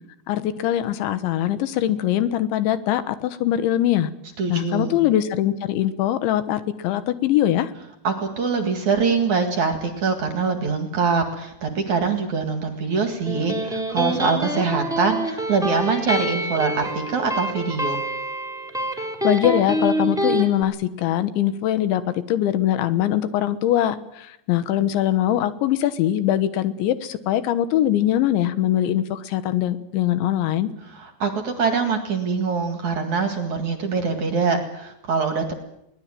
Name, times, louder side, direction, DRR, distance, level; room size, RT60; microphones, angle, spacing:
voice 1, 0.3-4.1 4.5-7.7 19.2-30.7, left 12 dB, 75° left, 12 dB, 3.4 m, -22 dB
voice 2, 4.4-5.0 8.0-18.0 30.9-35.5, right 5 dB, 50° right, 5 dB, 2.6 m, -24 dB
Electric guitar, 13.0-20.4, right 1 dB, ahead, 2.7 m, -26 dB
22.0 x 19.5 x 9.1 m, 0.83 s
omnidirectional pair, 5.5 m